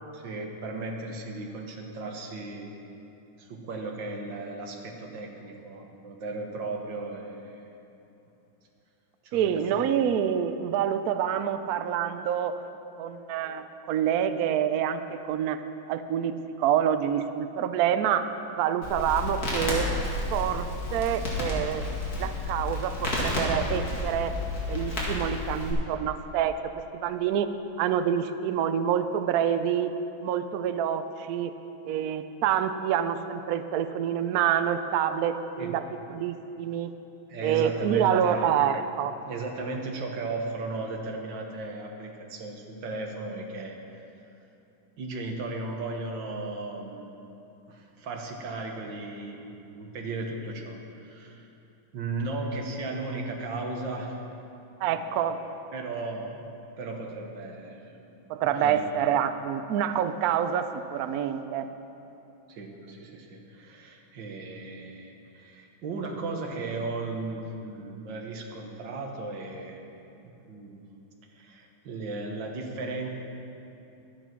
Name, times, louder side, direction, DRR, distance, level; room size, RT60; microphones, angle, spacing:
voice 1, 0.1-2.7 3.4-7.7 9.2-9.8 35.6-35.8 37.3-38.5 39.3-43.8 45.0-47.3 47.7-51.5 51.9-54.2 54.9-55.3 55.7-56.5 56.8-58.1 58.4-58.8 62.5-69.9 70.5-70.8 71.3-73.1, right 3 dB, 65° right, 2 dB, 1.8 m, -36 dB
voice 2, 9.3-12.6 13.0-15.6 15.9-18.3 18.6-19.9 20.3-21.8 22.2-24.3 24.7-26.5 27.0-27.5 27.8-29.9 30.2-31.5 31.8-35.8 36.1-36.9 37.4-39.1 54.8-55.6 58.3-61.7, right 9 dB, 90° right, 10 dB, 0.8 m, -27 dB
Crackle, 18.8-25.7, left 2 dB, 45° left, 2.6 m, -31 dB
12.0 x 9.1 x 6.0 m, 2.9 s
omnidirectional pair, 2.2 m